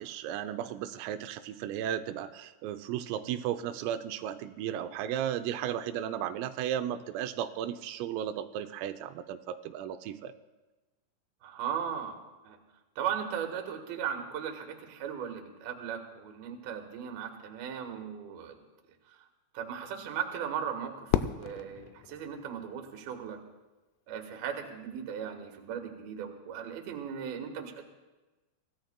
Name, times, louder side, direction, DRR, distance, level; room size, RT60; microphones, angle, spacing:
voice 1, 0.0-10.3, right 10 dB, 90° right, 9 dB, 3.3 m, -35 dB
voice 2, 11.4-12.2 12.4-12.6 13.0-18.6 19.5-23.4 24.1-27.8, right 8 dB, 65° right, 4 dB, 2.7 m, -37 dB
Fireworks, 21.1-23.3, left 11 dB, 85° left, 3.1 m, -34 dB
26.0 x 16.0 x 2.2 m, 1.1 s
omnidirectional pair, 5.8 m